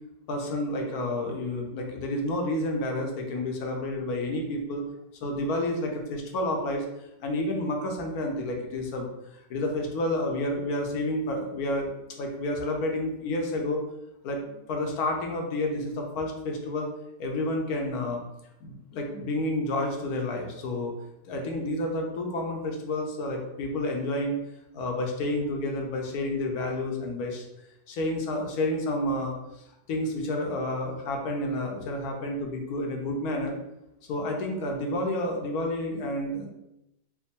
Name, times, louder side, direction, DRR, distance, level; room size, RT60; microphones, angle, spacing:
voice 1, 0.3-4.8 5.2-6.8 7.2-9.1 9.5-11.9 12.2-13.8 14.2-16.9 17.2-18.2 18.6-20.9 21.2-24.4 24.7-27.4 27.9-33.6 34.1-36.5, left 1 dB, 70° left, 1 dB, 1.2 m, -30 dB
3.4 x 2.1 x 4.1 m, 0.87 s
omnidirectional pair, 1.7 m